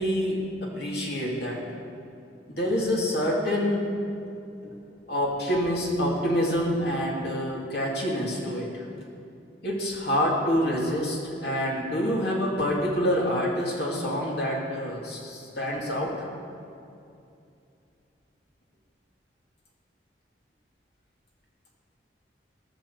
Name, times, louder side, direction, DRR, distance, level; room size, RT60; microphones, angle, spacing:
voice 1, 0.0-1.6 2.5-3.9 4.6-4.7 5.1-8.8 9.6-16.1, equal, 65° left, -3 dB, 2.6 m, -27 dB
17.5 x 6.3 x 7.0 m, 2.6 s
head